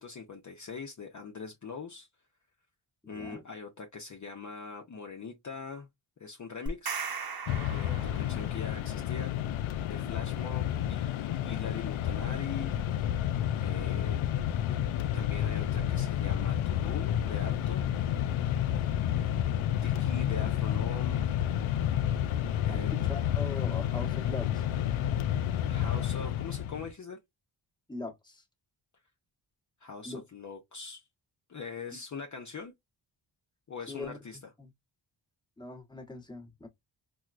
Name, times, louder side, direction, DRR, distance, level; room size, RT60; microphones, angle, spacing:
voice 1, 0.0-2.1 3.1-5.9 6.2-7.0 7.6-12.7 13.6-14.2 15.1-17.8 19.8-21.3 22.7-22.9 25.6-27.2 29.8-31.1 31.5-32.7 33.7-34.4, left 5 dB, 35° left, 0.7 m, -42 dB
voice 2, 3.0-3.4 22.7-24.6 27.9-28.4 30.0-30.2 33.9-34.7 35.6-36.7, left 3 dB, 10° left, 1.2 m, -41 dB
sound 1, 6.7-8.6, right 5 dB, 45° right, 0.9 m, -37 dB
Mechanisms, 7.5-26.9, left 11 dB, 75° left, 0.5 m, -30 dB
4.4 x 2.2 x 2.4 m
wide cardioid pair, 100°, 49 cm